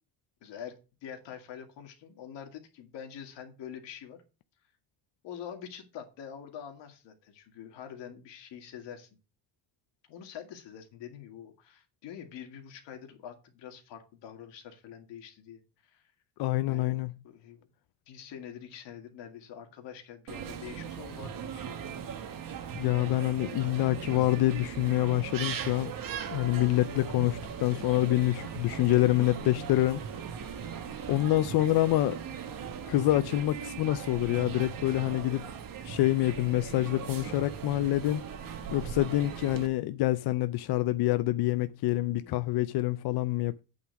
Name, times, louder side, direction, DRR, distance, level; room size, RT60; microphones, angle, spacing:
voice 1, 0.4-0.8 1.0-4.2 5.2-9.1 10.1-16.1 16.7-17.0 17.2-17.7 18.1-22.0 42.2-42.3, left 8 dB, 85° left, 2.0 m, -45 dB
voice 2, 16.4-17.1 22.7-25.9 26.3-30.0 31.1-32.2 32.9-35.5 35.8-38.2 38.7-43.6, left 16 dB, 65° left, 0.5 m, -26 dB
sound 1, 20.3-39.7, right 7 dB, 50° right, 1.1 m, -39 dB
8.6 x 3.9 x 6.9 m
cardioid pair, 140°, 42 cm